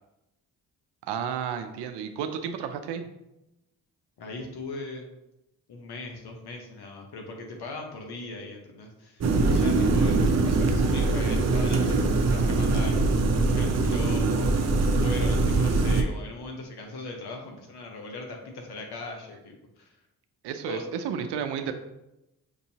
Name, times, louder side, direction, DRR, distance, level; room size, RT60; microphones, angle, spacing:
voice 1, 1.1-3.1 20.4-21.7, right 7 dB, 85° right, 8 dB, 0.6 m, -32 dB
voice 2, 4.2-5.1 5.7-20.0 20.7-20.8, left 3 dB, 70° left, 2 dB, 1.0 m, -40 dB
sound 1, 9.2-16.0, right 3 dB, 40° right, 0.6 m, -23 dB
6.0 x 2.7 x 2.8 m, 0.90 s
supercardioid pair, 55°, 40 cm